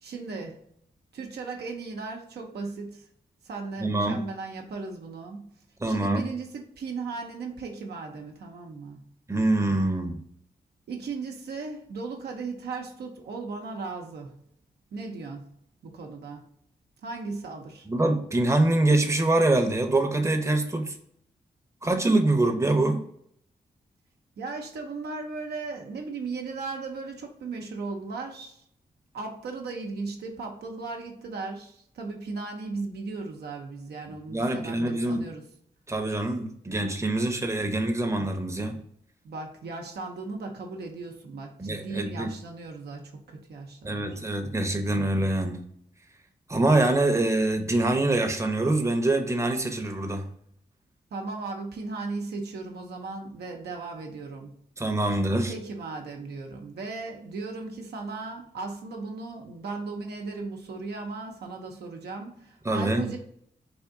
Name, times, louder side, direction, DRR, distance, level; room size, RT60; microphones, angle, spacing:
voice 1, 0.0-0.6 1.1-3.1 3.4-5.5 5.8-9.1 10.9-14.4 14.9-15.5 15.8-16.4 17.0-17.9 24.4-28.6 29.1-35.4 39.2-44.7 51.1-54.5 55.5-63.2, right 3 dB, 80° right, 0.7 m, -37 dB
voice 2, 3.8-4.2 5.8-6.2 9.3-10.2 17.9-21.0 21.8-23.0 34.3-35.3 35.9-38.8 41.6-42.3 43.8-45.6 46.5-50.3 54.8-55.5 62.6-63.1, right 2 dB, 15° right, 0.7 m, -24 dB
3.5 x 2.5 x 3.6 m
cardioid pair, 50°, 17 cm